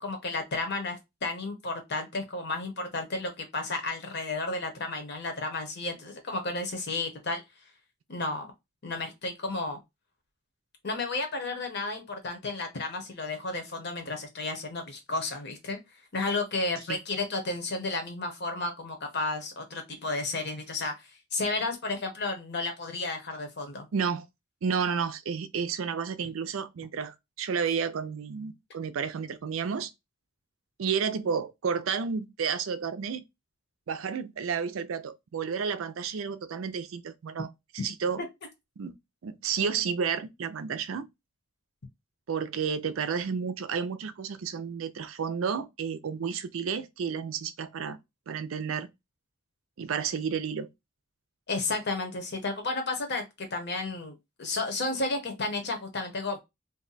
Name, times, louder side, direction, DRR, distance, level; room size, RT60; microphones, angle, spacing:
voice 1, 0.0-7.4 8.1-8.5 8.8-9.8 10.8-15.8 16.1-23.9 26.2-26.3 51.5-56.4, left 3 dB, 55° left, 0.9 m, -32 dB
voice 2, 23.9-24.3 24.6-29.9 30.8-33.2 33.9-37.5 37.7-38.2 38.8-38.9 39.2-41.1 42.3-48.0 48.3-48.9 49.8-50.7, right 6 dB, 85° right, 0.4 m, -31 dB
2.6 x 2.2 x 3.9 m
head